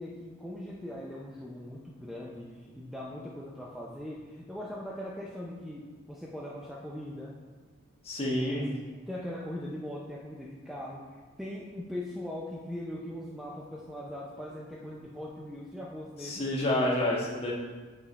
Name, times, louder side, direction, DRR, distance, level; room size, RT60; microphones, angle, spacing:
voice 1, 0.0-7.3 8.2-8.8 9.1-11.0 11.4-16.4, left 1 dB, ahead, -4 dB, 0.5 m, -40 dB
voice 2, 8.0-8.7 16.2-17.5, left 1 dB, 30° left, -3 dB, 1.3 m, -28 dB
7.6 x 5.1 x 4.1 m, 1.4 s
head